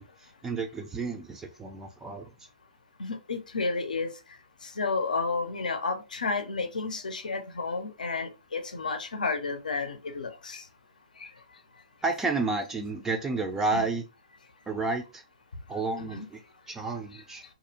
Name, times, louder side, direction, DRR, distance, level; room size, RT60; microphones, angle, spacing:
voice 1, 0.0-2.3 12.0-14.0 14.7-15.2 15.7-16.4 16.7-17.4, right 3 dB, 10° right, 0.3 m, -31 dB
voice 2, 3.0-4.1 4.6-10.6 11.2-11.3 13.7-13.9 16.0-16.3, left 4 dB, 85° left, 0.5 m, -31 dB
2.5 x 2.0 x 2.7 m
hypercardioid pair, 140°, 4 cm